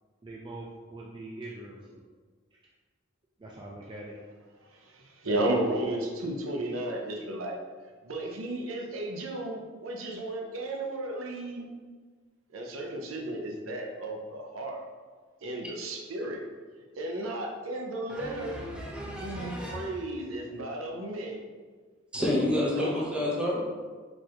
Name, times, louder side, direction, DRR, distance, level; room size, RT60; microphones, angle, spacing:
voice 1, 0.2-2.1 3.4-4.2 18.4-18.6, right 2 dB, 25° right, -3 dB, 0.4 m, -43 dB
voice 2, 4.7-7.6 8.0-11.7 12.5-14.8 15.4-16.4 17.0-18.6 19.2-21.4 22.2-22.5 22.7-23.1, right 1 dB, 85° right, 1 dB, 0.7 m, -34 dB
voice 3, 18.1-19.9 22.1-23.6, left 1 dB, 5° right, -5 dB, 0.8 m, -30 dB
4.6 x 2.5 x 4.2 m, 1.5 s
head